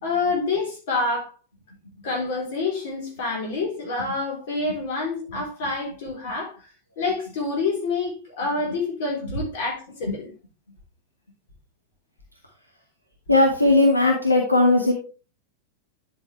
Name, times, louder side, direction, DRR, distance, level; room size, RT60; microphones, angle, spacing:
voice 1, 0.0-1.3 2.0-6.6 7.0-10.3, left 3 dB, 55° left, 3.7 m, -27 dB
voice 2, 13.3-14.9, left 2 dB, 85° left, 1.6 m, -18 dB
10.5 x 5.7 x 3.3 m
figure-of-eight pair, 90°, 0 cm